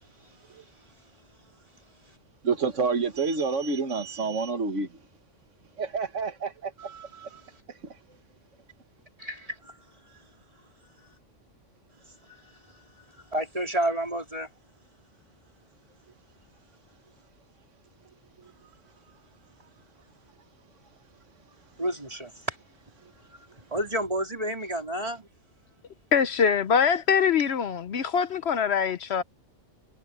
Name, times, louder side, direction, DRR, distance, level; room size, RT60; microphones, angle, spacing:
voice 1, 2.4-4.9 5.8-6.7, right 4 dB, 85° right, 1.9 m, -28 dB
voice 2, 6.8-7.6 9.2-10.3 11.0-11.1 12.0-14.5 21.8-22.6 23.3-25.3, right 1 dB, 30° right, 4.4 m, -32 dB
voice 3, 26.1-29.2, left 7 dB, 65° left, 1.0 m, -23 dB
omnidirectional pair, 1.2 m